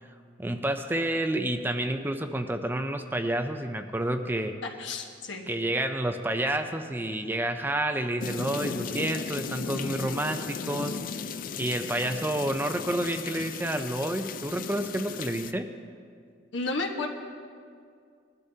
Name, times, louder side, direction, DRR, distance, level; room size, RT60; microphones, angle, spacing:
voice 1, 0.4-4.6 5.5-11.0 11.6-15.7, right 1 dB, 10° right, 7 dB, 0.5 m, -29 dB
voice 2, 4.8-5.5 16.5-17.1, left 3 dB, 70° left, 1 dB, 1.3 m, -32 dB
sound 1, 8.2-15.5, left 5 dB, 50° left, 0.4 m, -36 dB
20.0 x 12.0 x 2.8 m, 2.2 s
head